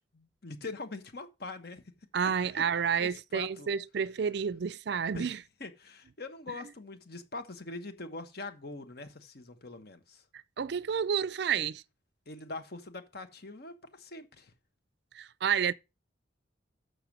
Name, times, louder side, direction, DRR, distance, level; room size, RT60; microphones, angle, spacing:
voice 1, 0.1-1.8 2.5-2.6 3.0-3.7 5.1-5.3 5.6-10.2 12.3-14.5, left 3 dB, 55° left, 1.2 m, -43 dB
voice 2, 2.1-5.4 10.3-11.8 15.1-15.7, right 7 dB, 60° right, 0.4 m, -30 dB
6.9 x 6.4 x 5.9 m
head